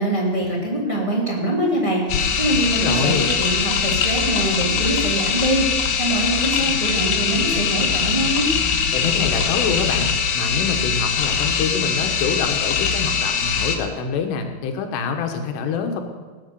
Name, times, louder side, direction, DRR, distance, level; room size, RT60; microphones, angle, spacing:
voice 1, 0.0-8.5, right 1 dB, 10° right, -4 dB, 1.9 m, -23 dB
sound 1, 2.1-13.8, left 6 dB, 65° left, 2.3 m, -22 dB
voice 2, 2.8-3.3 8.9-16.0, left 5 dB, 85° left, 4 dB, 3.4 m, -25 dB
18.0 x 7.9 x 6.8 m, 1.4 s
omnidirectional pair, 4.8 m